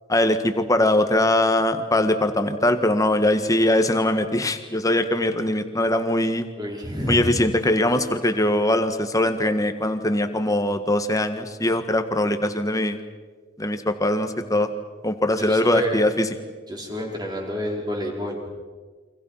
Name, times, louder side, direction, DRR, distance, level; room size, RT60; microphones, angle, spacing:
voice 1, 0.1-6.5 7.1-13.0 13.6-14.7 15.0-16.3, left 1 dB, 15° left, 8 dB, 1.6 m, -21 dB
voice 2, 6.6-7.4 15.3-16.0 16.7-18.5, equal, 20° right, 0 dB, 4.7 m, -29 dB
29.0 x 25.0 x 5.8 m, 1.4 s
head